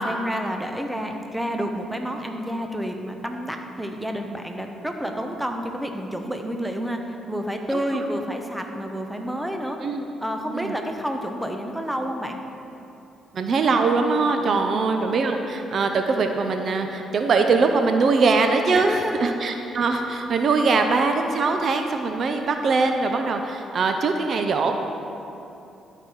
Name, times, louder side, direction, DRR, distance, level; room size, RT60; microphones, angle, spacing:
voice 1, 0.0-9.8 10.2-12.4 14.4-14.7 18.7-19.3, equal, 5° right, 3 dB, 0.8 m, -29 dB
voice 2, 13.3-24.7, right 4 dB, 55° right, 5 dB, 0.6 m, -22 dB
11.5 x 4.9 x 4.6 m, 2.8 s
cardioid pair, 90°, 0 cm